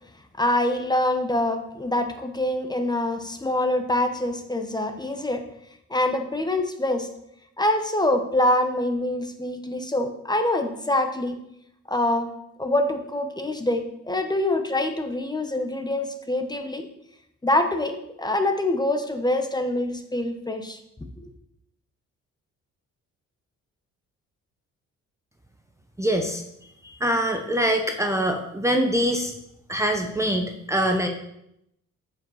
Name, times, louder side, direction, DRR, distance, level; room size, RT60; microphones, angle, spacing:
voice 1, 0.4-5.4 5.9-7.1 7.6-11.4 11.9-12.3 12.6-16.9 17.4-20.8 21.2-21.3, left 1 dB, 15° left, 6 dB, 1.0 m, -25 dB
voice 2, 26.0-26.4 26.8-29.3 29.7-31.1, equal, 10° right, 3 dB, 0.8 m, -24 dB
8.9 x 5.5 x 4.2 m, 0.80 s
cardioid pair, 90°, 30 cm